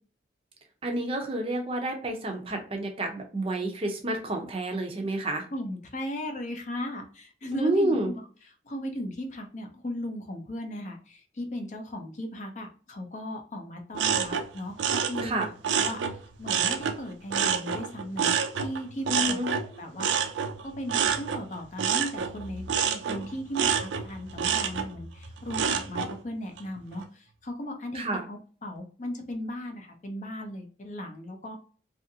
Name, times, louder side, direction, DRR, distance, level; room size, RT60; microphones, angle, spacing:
voice 1, 0.8-5.4 7.5-8.1 15.2-15.5 19.1-19.5 27.9-28.2, right 1 dB, 30° right, 3 dB, 0.5 m, -29 dB
voice 2, 5.5-8.2 8.6-15.5 15.8-16.0 16.4-18.4 18.6-31.6, left 1 dB, 40° left, 4 dB, 0.5 m, -37 dB
sound 1, 13.9-17.0 17.3-26.1 26.6-27.0, right 7 dB, 85° right, 0.4 m, -28 dB
2.7 x 2.4 x 2.7 m, 0.40 s
head